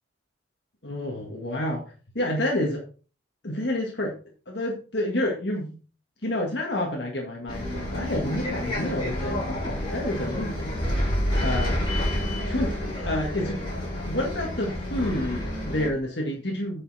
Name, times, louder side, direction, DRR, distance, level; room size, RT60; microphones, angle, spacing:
voice 1, 0.8-2.8 3.4-4.1 4.5-5.8 6.2-10.7 11.4-11.8 12.5-13.6 14.1-16.8, left 1 dB, 60° left, -1 dB, 1.8 m, -29 dB
Bus, 7.5-15.9, left 1 dB, 25° left, 4.9 m, -29 dB
9.0 x 5.6 x 4.2 m, 0.36 s
head